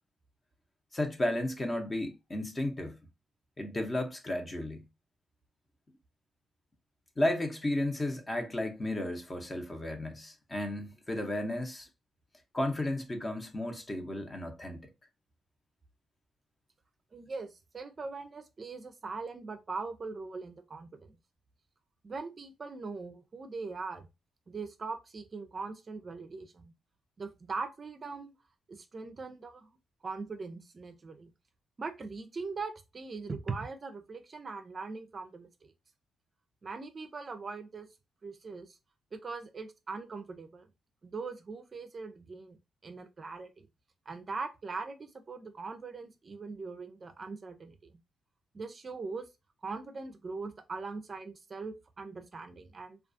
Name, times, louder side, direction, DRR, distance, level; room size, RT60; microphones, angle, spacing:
voice 1, 0.9-3.0 3.6-4.8 7.2-11.9 12.5-14.8, left 1 dB, 30° left, 0.7 m, -33 dB
voice 2, 17.1-21.2 22.0-24.1 24.5-26.7 27.2-28.3 28.7-29.7 30.0-31.3 31.8-35.7 36.6-37.9 38.2-38.8 39.1-40.7 41.0-42.6 42.8-43.7 44.1-47.9 48.5-49.3 49.6-53.0, right 4 dB, 45° right, 0.4 m, -41 dB
2.3 x 2.3 x 2.5 m
cardioid pair, 70°, 0 cm